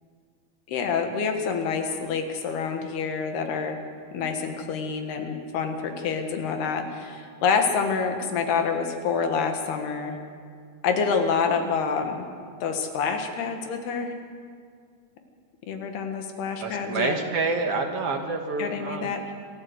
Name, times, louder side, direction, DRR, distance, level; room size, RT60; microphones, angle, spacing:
voice 1, 0.7-3.8 4.1-10.1 10.8-12.3 12.6-14.1 15.7-17.2 18.6-19.3, left 5 dB, 90° left, 5 dB, 3.7 m, -27 dB
voice 2, 16.6-19.1, right 4 dB, 60° right, 3 dB, 1.6 m, -28 dB
27.0 x 13.5 x 8.1 m, 2.1 s
omnidirectional pair, 4.5 m